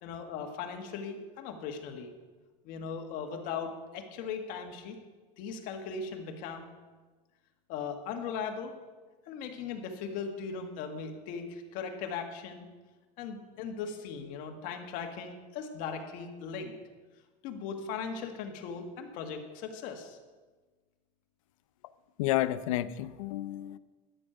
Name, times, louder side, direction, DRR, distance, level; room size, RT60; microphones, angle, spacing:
voice 1, 0.0-2.1 2.6-5.0 5.4-6.7 7.7-8.7 9.3-12.7 13.2-16.7 17.4-20.2, left 6 dB, 55° left, 4 dB, 1.8 m, -38 dB
voice 2, 22.2-23.8, left 14 dB, 85° left, 14 dB, 0.6 m, -30 dB
12.0 x 6.5 x 8.9 m, 1.3 s
supercardioid pair, 145°, 17 cm